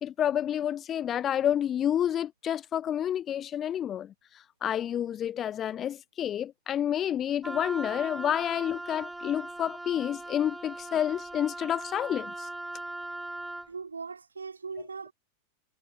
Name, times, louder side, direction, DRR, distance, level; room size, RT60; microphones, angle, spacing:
voice 1, 0.0-4.1 4.6-12.5 14.8-14.9, left 10 dB, 25° left, 0.6 m, -29 dB
Wind instrument woodwind instrument, 7.4-13.7, right 2 dB, 5° right, 1.8 m, -39 dB
voice 2, 13.7-15.1, right 5 dB, 75° right, 1.4 m, -39 dB
figure-of-eight pair, 90°, 0 cm